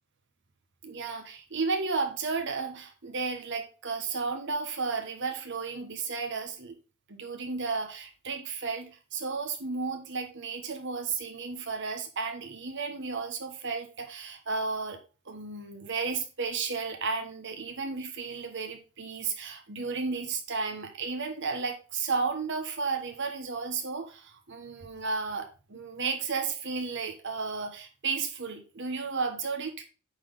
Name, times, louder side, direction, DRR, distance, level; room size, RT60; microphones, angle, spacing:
voice 1, 0.8-6.7 7.1-15.0 15.3-29.8, right 4 dB, 60° right, 5 dB, 1.5 m, -33 dB
8.6 x 4.3 x 4.0 m, 0.33 s
head